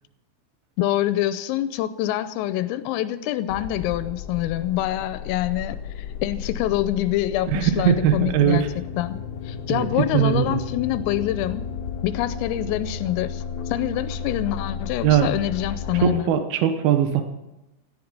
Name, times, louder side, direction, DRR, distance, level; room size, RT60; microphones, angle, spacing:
voice 1, 0.8-9.2 9.4-11.7 12.0-16.3, left 13 dB, 85° left, 3.3 m, -26 dB
sound 1, 3.5-16.0, left 6 dB, 65° left, 2.6 m, -33 dB
voice 2, 7.5-8.7 9.7-10.6 15.0-15.3 16.0-17.2, right 10 dB, 80° right, 2.2 m, -20 dB
17.5 x 13.5 x 5.3 m
omnidirectional pair, 5.9 m